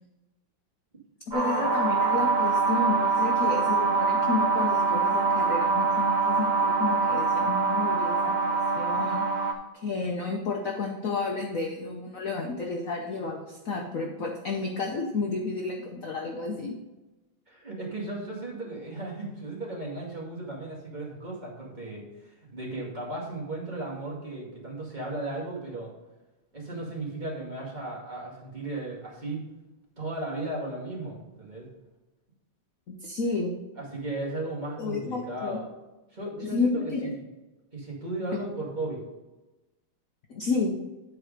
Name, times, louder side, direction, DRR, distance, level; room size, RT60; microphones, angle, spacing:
voice 1, 1.3-9.3 9.7-16.8 32.9-33.5 34.8-35.6 36.5-37.1 40.3-40.7, left 4 dB, 55° left, 2 dB, 1.0 m, -31 dB
sound 1, 1.3-9.5, right 4 dB, 60° right, 0.4 m, -24 dB
voice 2, 17.5-25.9 26.5-29.4 30.0-31.7 33.8-35.7 36.1-37.3 37.7-39.0, right 2 dB, 20° right, -4 dB, 2.1 m, -35 dB
10.0 x 4.7 x 5.0 m, 1.1 s
omnidirectional pair, 2.2 m